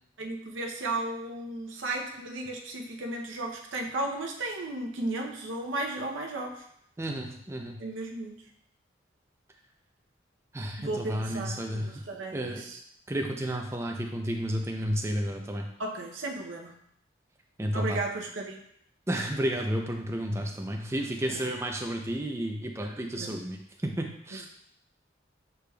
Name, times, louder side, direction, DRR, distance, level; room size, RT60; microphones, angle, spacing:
voice 1, 0.2-6.6 7.8-8.4 10.8-12.8 15.0-15.2 15.8-16.7 17.7-18.6 20.3-20.6 21.3-21.4 23.1-23.5 24.3-24.5, right 2 dB, 85° right, 1 dB, 0.6 m, -35 dB
voice 2, 7.0-7.8 10.5-11.9 12.3-12.6 13.1-15.7 17.6-18.0 19.1-23.6 23.8-24.5, equal, 15° right, 2 dB, 0.4 m, -31 dB
6.6 x 3.4 x 2.2 m, 0.72 s
head